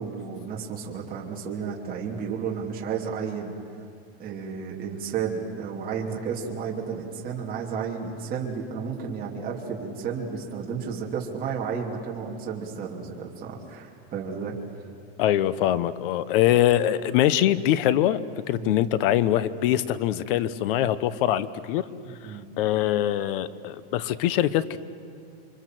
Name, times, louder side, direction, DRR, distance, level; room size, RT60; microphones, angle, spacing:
voice 1, 0.0-3.5 4.2-14.5 18.5-18.8 22.0-22.5, right 6 dB, 25° right, -2 dB, 3.1 m, -32 dB
voice 2, 15.2-18.2 18.5-21.8 22.6-24.8, left 12 dB, 55° left, 16 dB, 1.0 m, -23 dB
30.0 x 24.5 x 7.7 m, 2.4 s
supercardioid pair, 160°, 32 cm